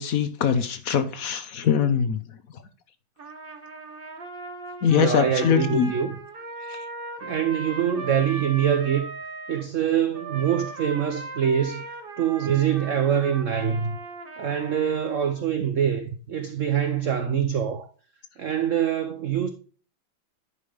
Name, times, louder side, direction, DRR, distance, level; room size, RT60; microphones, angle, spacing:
voice 1, 0.0-2.2 4.8-5.9 6.7-6.8, left 7 dB, 55° left, 1.0 m, -22 dB
Trumpet, 3.2-9.7 10.1-15.5, right 3 dB, 40° right, 0.8 m, -38 dB
voice 2, 4.9-6.2 7.2-9.1 9.5-11.8 12.2-14.0 14.4-17.9 18.4-19.5, right 8 dB, 80° right, 0.6 m, -24 dB
11.0 x 5.4 x 3.4 m
omnidirectional pair, 2.2 m